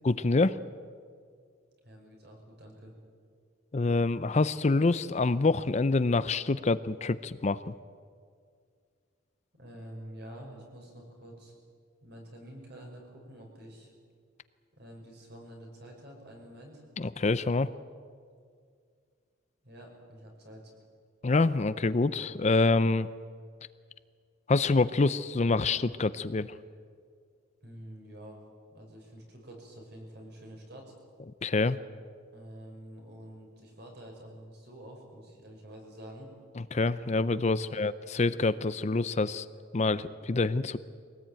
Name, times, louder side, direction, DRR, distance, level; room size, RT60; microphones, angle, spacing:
voice 1, 0.0-0.6 3.7-7.7 17.0-17.7 21.2-23.1 24.5-26.6 31.4-31.8 36.6-39.5 39.7-40.8, left 3 dB, 35° left, 14 dB, 0.5 m, -26 dB
voice 2, 1.8-2.9 9.6-11.5 12.0-13.9 14.8-16.8 19.6-20.7 27.6-28.4 28.7-30.9 32.3-36.3 37.6-37.9, right 1 dB, 55° right, 1 dB, 6.1 m, -48 dB
23.0 x 18.5 x 9.0 m, 2.1 s
head